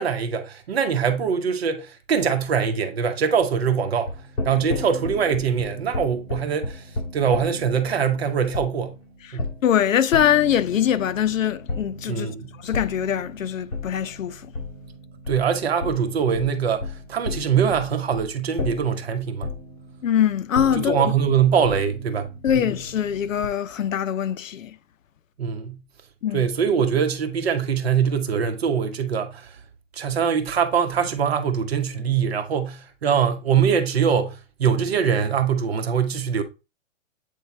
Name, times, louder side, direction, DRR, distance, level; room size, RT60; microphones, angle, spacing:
voice 1, 0.0-9.0 9.3-9.5 12.1-12.5 15.3-19.5 20.8-22.7 25.4-25.8 26.3-29.6 29.9-36.4, right 7 dB, 50° right, 1.2 m, -23 dB
sound 1, 3.9-23.5, left 2 dB, 50° left, 3.1 m, -35 dB
voice 2, 9.6-14.5 20.0-21.1 22.4-24.8 26.2-26.5, left 9 dB, 75° left, 0.8 m, -23 dB
8.5 x 3.4 x 4.3 m
hypercardioid pair, 175°, 39 cm